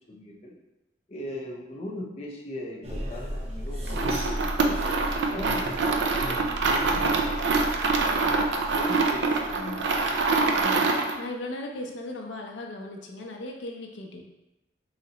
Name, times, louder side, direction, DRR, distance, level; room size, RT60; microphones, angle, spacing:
voice 1, 0.1-0.5 1.1-6.4 6.7-7.2 7.9-10.8, left 1 dB, 35° left, -2 dB, 0.5 m, -40 dB
sound 1, 2.8-10.6, equal, 35° right, 0.6 m, -35 dB
sound 2, 3.9-11.2, right 3 dB, 80° right, 0.4 m, -25 dB
voice 2, 11.2-14.2, left 1 dB, 85° left, 1 dB, 0.5 m, -37 dB
4.0 x 3.2 x 2.8 m, 0.93 s
head